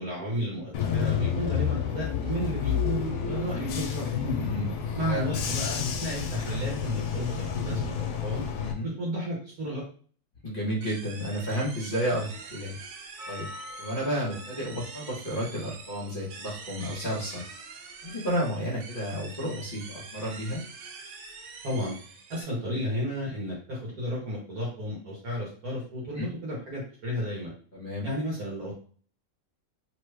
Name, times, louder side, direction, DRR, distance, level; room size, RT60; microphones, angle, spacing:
voice 1, 0.0-4.4 4.9-8.4 8.8-9.8 21.6-21.9 22.3-27.5 28.0-28.7, equal, 70° right, -4 dB, 1.4 m, -32 dB
Bus / Engine, 0.7-8.7, left 8 dB, 80° left, 1.0 m, -30 dB
voice 2, 4.3-4.7 5.1-5.4 8.6-8.9 10.4-12.8 13.3-13.5 13.8-17.4 18.0-20.6 26.1-26.3 27.7-28.1, equal, 40° left, -4 dB, 1.0 m, -31 dB
sound 1, 10.8-22.4, right 5 dB, 85° right, 1.1 m, -45 dB
Percussion, 13.2-17.5 17.8-17.9, left 1 dB, ahead, 0.3 m, -48 dB
3.1 x 2.3 x 3.2 m, 0.43 s
omnidirectional pair, 1.6 m